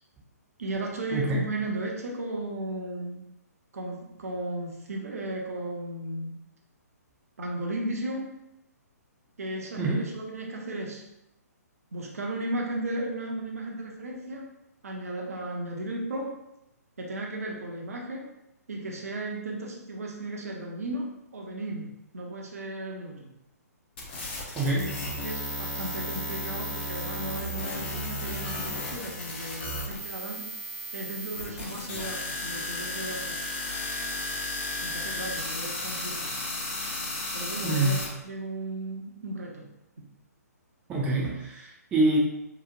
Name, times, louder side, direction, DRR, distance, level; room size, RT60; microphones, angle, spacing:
voice 1, 0.6-3.2 3.7-6.3 7.4-8.3 9.4-11.0 11.9-14.5 14.8-16.4 17.0-18.2 18.7-23.3 24.8-24.9 25.2-30.5 30.9-33.4 34.8-36.4 37.3-39.6, right 2 dB, 60° right, -1 dB, 0.6 m, -35 dB
voice 2, 1.1-1.4 9.8-10.0 24.5-24.8 37.6-37.9 40.9-42.2, right 2 dB, 15° right, -3 dB, 0.4 m, -25 dB
sound 1, 24.0-38.1, left 1 dB, 35° left, 0.6 m, -34 dB
2.9 x 2.0 x 2.5 m, 0.86 s
figure-of-eight pair, 130°, 9 cm